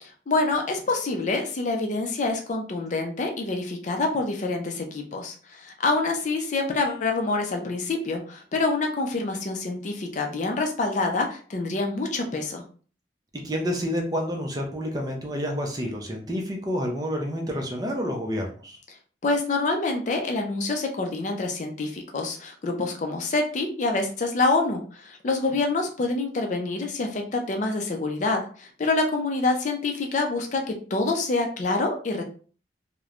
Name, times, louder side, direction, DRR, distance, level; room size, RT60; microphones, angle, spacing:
voice 1, 0.0-12.6 19.2-32.2, left 3 dB, 40° left, 3 dB, 0.4 m, -26 dB
voice 2, 13.3-18.8, equal, 20° right, 1 dB, 0.5 m, -29 dB
3.0 x 2.1 x 2.4 m, 0.41 s
head